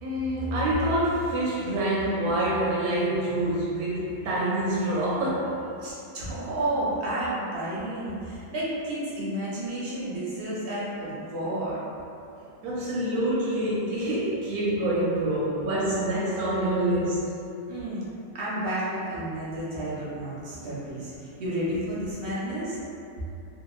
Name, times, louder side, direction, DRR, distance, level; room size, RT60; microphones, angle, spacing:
voice 1, 0.0-5.7 12.6-17.3, right 1 dB, 90° right, -7 dB, 1.1 m, -26 dB
voice 2, 5.8-11.8 17.7-18.0 18.3-22.8, right 1 dB, 60° right, -8 dB, 0.6 m, -31 dB
2.7 x 2.2 x 2.3 m, 2.6 s
omnidirectional pair, 1.5 m